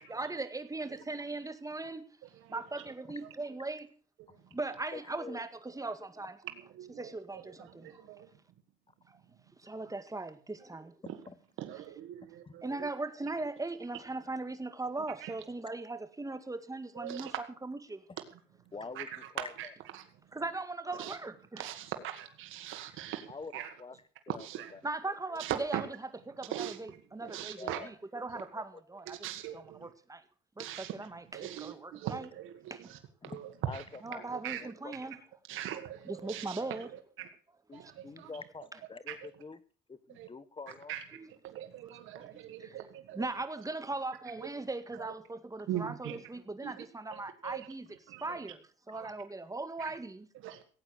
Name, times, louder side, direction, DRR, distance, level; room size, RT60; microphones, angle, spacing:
voice 1, 0.1-2.1 2.5-3.9 4.5-6.4 7.0-8.1 9.1-9.2 9.6-11.0 12.6-17.3 17.6-18.0 20.3-21.7 24.8-25.9 26.3-29.2 29.5-30.2 30.6-32.3 32.7-32.9 34.0-35.2 36.1-36.9 37.7-37.9 41.1-41.3 42.1-42.9 43.1-47.9 48.2-50.3, right 2 dB, 15° right, 2.0 m, -39 dB
voice 2, 2.5-2.8 4.3-4.4 6.7-8.3 11.6-12.9 15.2-15.3 16.9-17.3 18.9-19.2 19.6-19.7 19.9-20.0 21.0-21.2 21.6-23.7 24.4-24.7 25.4-25.8 26.5-27.9 29.1-29.9 30.6-30.9 31.3-33.8 34.2-34.7 35.5-37.3 37.7-38.3 39.1-39.2 40.2-40.3 40.9-41.0 41.4-43.3 44.4-44.5 45.0-45.1 45.7-46.2 46.6-46.8 47.1-47.7 48.1-48.4 48.9-49.1 49.8-49.9 50.4-50.6, right 11 dB, 90° right, 1.8 m, -41 dB
voice 3, 4.9-5.4 11.0-11.4 12.4-12.5 18.1-18.2 18.7-19.5 22.0-22.1 23.3-24.0 24.3-24.5 24.7-24.8 27.2-27.3 27.6-27.9 33.2-34.9 37.7-39.6 39.9-40.9, left 4 dB, 25° left, 1.4 m, -46 dB
17.5 x 8.8 x 6.5 m
cardioid pair, 90°, 20 cm